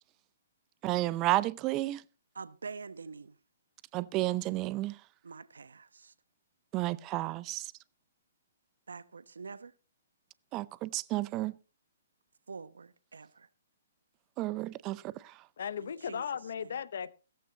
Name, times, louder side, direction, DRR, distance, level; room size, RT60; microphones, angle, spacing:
voice 1, 0.8-2.0 3.9-4.9 6.7-7.7 10.5-11.5 14.4-15.1, right 18 dB, 25° right, 0.6 m, -31 dB
voice 2, 2.3-3.3 5.2-6.1 8.9-9.7 12.5-13.5 15.8-16.2 16.6-16.7, right 4 dB, 75° right, 1.0 m, -45 dB
voice 3, 15.6-17.1, left 7 dB, 60° left, 0.9 m, -36 dB
16.5 x 14.5 x 2.9 m
hypercardioid pair, 135°, 0 cm